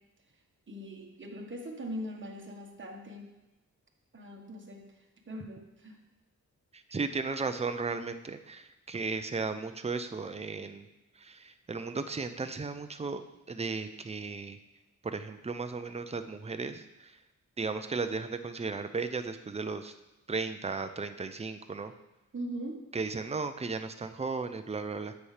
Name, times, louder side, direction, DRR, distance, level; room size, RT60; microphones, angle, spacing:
voice 1, 0.7-3.3 4.1-4.9 5.3-6.0 22.3-22.8, equal, 35° right, 0 dB, 1.3 m, -41 dB
voice 2, 6.7-10.9 11.2-13.2 13.5-14.6 15.0-17.2 17.6-19.9 20.3-21.9 22.9-25.1, right 4 dB, 20° right, 9 dB, 0.5 m, -35 dB
9.7 x 7.1 x 3.3 m, 0.99 s
wide cardioid pair, 100°, 32 cm